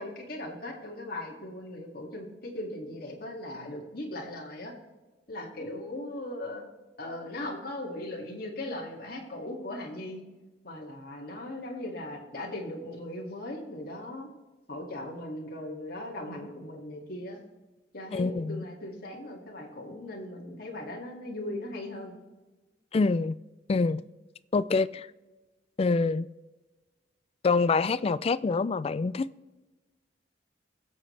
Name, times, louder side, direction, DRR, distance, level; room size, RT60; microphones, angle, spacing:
voice 1, 0.0-4.7 5.3-6.6 7.0-10.2 10.6-14.3 14.7-17.4 17.9-22.1, left 1 dB, 55° left, 2.3 m, -38 dB
voice 2, 18.1-18.6 22.9-23.4 23.7-24.0 24.5-25.1 25.8-26.3 27.4-29.3, left 4 dB, 30° left, 0.3 m, -26 dB
22.5 x 7.7 x 3.3 m
head